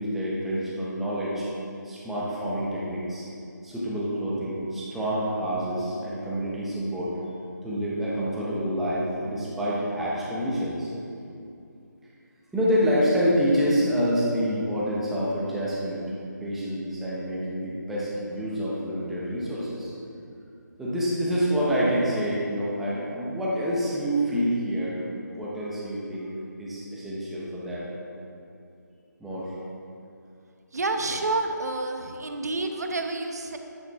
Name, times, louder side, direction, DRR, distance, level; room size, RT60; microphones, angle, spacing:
voice 1, 0.0-1.5 1.8-3.3 3.6-7.2 7.6-10.9 12.5-16.1 16.4-19.9 20.8-25.0 25.3-26.3 26.6-27.9 29.2-29.6, equal, ahead, -8 dB, 0.8 m, -27 dB
voice 2, 30.7-33.6, right 2 dB, 55° right, 5 dB, 1.0 m, -29 dB
10.5 x 9.9 x 3.5 m, 2.6 s
figure-of-eight pair, 170°, 10 cm